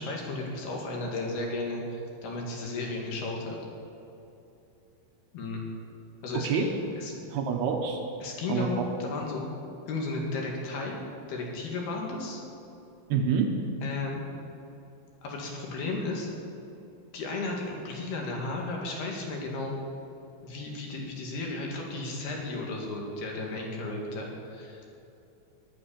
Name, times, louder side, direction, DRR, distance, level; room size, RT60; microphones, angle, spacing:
voice 1, 0.0-3.6 5.3-5.6 6.2-7.1 8.2-9.5 9.9-11.0 11.3-12.4 13.8-14.2 15.2-16.3 17.1-19.8 20.4-25.0, left 2 dB, 60° left, -1 dB, 3.9 m, -34 dB
voice 2, 6.3-6.7 7.3-8.0 8.5-8.8 13.1-13.5, right 6 dB, 70° right, 3 dB, 2.8 m, -27 dB
23.5 x 8.7 x 7.1 m, 2.8 s
omnidirectional pair, 5.3 m